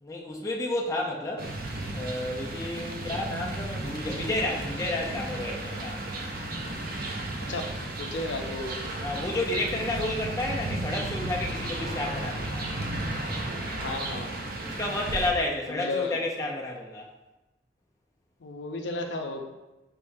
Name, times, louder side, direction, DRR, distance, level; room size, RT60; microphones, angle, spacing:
voice 1, 0.0-1.5 1.9-6.0 9.0-12.7 14.6-17.1, left 2 dB, 20° left, -2 dB, 0.5 m, -31 dB
sound 1, 1.4-15.3, right 1 dB, 55° right, 0.6 m, -34 dB
voice 2, 2.9-3.3 7.5-8.8 13.7-14.4 15.7-16.2 18.4-19.4, left 3 dB, 80° left, 3 dB, 0.5 m, -34 dB
4.6 x 3.5 x 2.6 m, 1.0 s
head